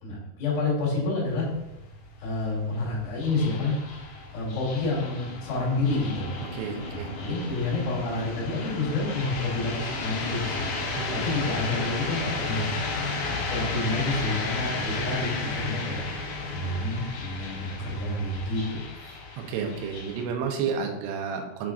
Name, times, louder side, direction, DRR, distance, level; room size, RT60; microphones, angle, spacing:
voice 1, 0.0-1.5 2.2-3.7 4.3-6.4 6.9-10.7 11.1-12.7 13.2-16.0 16.5-18.8, left 2 dB, 55° left, -6 dB, 4.1 m, -29 dB
sound 1, 1.3-20.2, left 3 dB, 70° left, 2.0 m, -34 dB
voice 2, 6.4-7.1 11.1-11.2 19.4-21.7, right 6 dB, 90° right, 3 dB, 3.4 m, -31 dB
8.1 x 6.0 x 2.5 m, 0.91 s
omnidirectional pair, 5.5 m